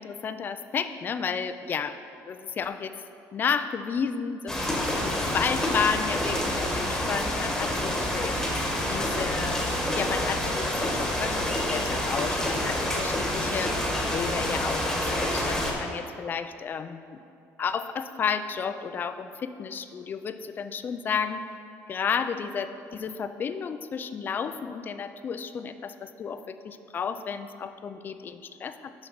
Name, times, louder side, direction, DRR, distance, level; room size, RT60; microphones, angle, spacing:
voice 1, 0.0-2.0 2.3-2.9 3.3-17.2 17.6-21.4 21.9-28.9, left 6 dB, 30° left, 10 dB, 0.4 m, -32 dB
sound 1, 4.5-15.7, left 1 dB, 5° left, 1.2 m, -28 dB
6.4 x 5.8 x 5.8 m, 2.6 s
cardioid pair, 130°, 6 cm